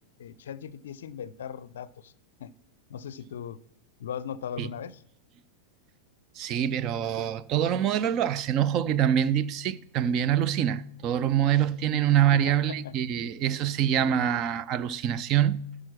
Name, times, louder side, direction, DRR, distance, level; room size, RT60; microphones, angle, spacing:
voice 1, 0.2-2.1 2.4-2.5 2.9-3.6 4.0-5.0 12.3-13.3, left 8 dB, 60° left, 0.5 m, -39 dB
voice 2, 6.4-15.6, right 10 dB, 35° right, 0.5 m, -25 dB
12.0 x 4.9 x 5.9 m
figure-of-eight pair, 90°, 0 cm